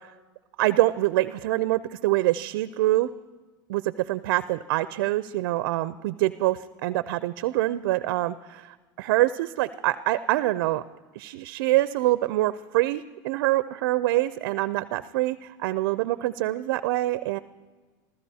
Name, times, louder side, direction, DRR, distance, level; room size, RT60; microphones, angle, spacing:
voice 1, 0.6-3.1 3.7-10.8 11.1-17.4, right 17 dB, 80° right, 15 dB, 0.4 m, -25 dB
27.5 x 14.5 x 2.8 m, 1.4 s
supercardioid pair, 105°, 12 cm